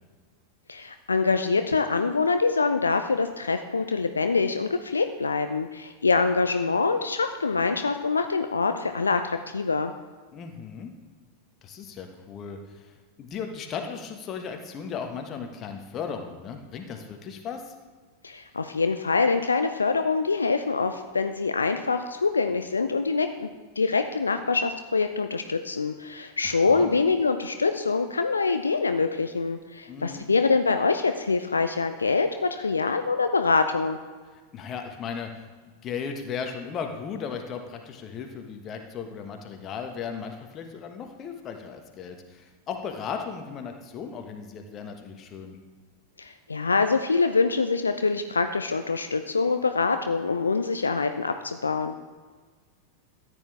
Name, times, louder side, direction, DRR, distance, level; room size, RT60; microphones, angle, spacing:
voice 1, 0.7-9.9 18.2-23.5 23.8-34.0 46.2-51.9, left 4 dB, 75° left, 8 dB, 0.4 m, -25 dB
voice 2, 10.3-10.9 11.6-17.7 26.4-26.9 29.9-30.3 34.5-35.5 35.8-45.6, left 6 dB, 30° left, 4 dB, 1.4 m, -36 dB
14.0 x 9.1 x 3.4 m, 1.5 s
figure-of-eight pair, 90°, 0 cm